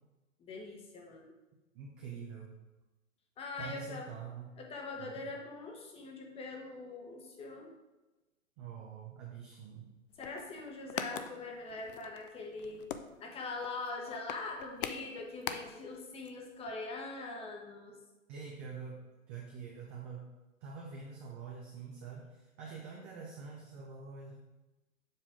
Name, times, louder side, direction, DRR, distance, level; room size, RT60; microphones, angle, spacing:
voice 1, 0.4-1.3 3.4-4.1 4.6-7.7 10.2-12.8 13.2-17.9, left 3 dB, 15° left, 1 dB, 0.9 m, -42 dB
voice 2, 1.7-2.5 3.6-4.5 4.9-5.3 8.6-9.9 18.3-19.0 19.3-20.3 20.6-24.4, right 5 dB, 15° right, -2 dB, 0.4 m, -46 dB
sound 1, 10.1-16.0 16.2-16.3 16.6-16.7, left 8 dB, 45° left, 0.5 m, -43 dB
7.5 x 5.4 x 3.5 m, 1.1 s
hypercardioid pair, 120°, 40 cm